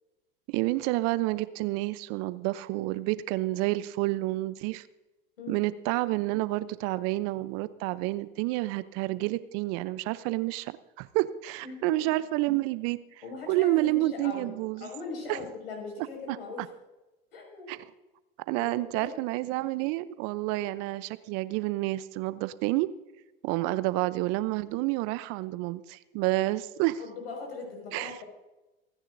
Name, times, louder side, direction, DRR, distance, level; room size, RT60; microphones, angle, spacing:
voice 1, 0.5-4.9 5.5-13.0 13.5-14.9 15.3-15.4 16.3-16.4 17.7-17.8 18.5-22.9 23.4-27.0 27.9-28.1, right 18 dB, 50° right, 16 dB, 0.7 m, -29 dB
voice 2, 11.6-12.1 13.2-14.5 14.8-16.7 17.3-17.7 18.6-19.1 27.0-28.2, left 4 dB, 75° left, 1 dB, 5.7 m, -40 dB
28.0 x 10.0 x 2.6 m, 1.1 s
hypercardioid pair, 85°, 29 cm